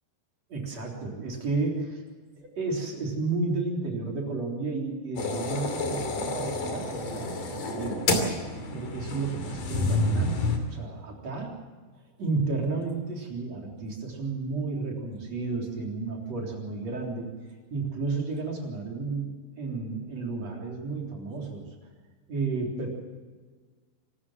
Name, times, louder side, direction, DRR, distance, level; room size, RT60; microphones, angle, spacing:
voice 1, 0.5-2.0 2.4-8.0 8.7-10.3 10.7-11.5 12.2-17.3 17.7-21.7 22.3-22.9, right 3 dB, 35° right, 0 dB, 4.1 m, -32 dB
sound 1, 5.2-10.6, left 2 dB, 45° left, 3.6 m, -29 dB
26.5 x 13.5 x 7.5 m, 1.4 s
omnidirectional pair, 5.9 m